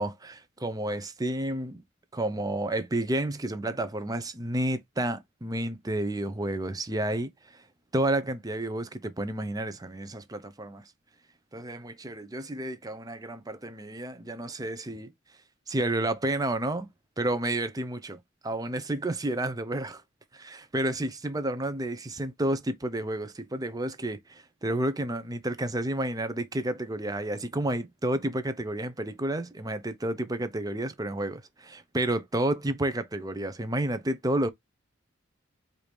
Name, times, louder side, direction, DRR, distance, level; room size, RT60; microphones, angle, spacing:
voice 1, 0.0-1.8 2.1-7.6 7.9-10.8 11.5-15.1 15.7-16.9 17.2-18.2 18.4-20.0 20.3-34.5, right 1 dB, 20° right, 0.6 m, -30 dB
4.6 x 2.6 x 3.4 m
head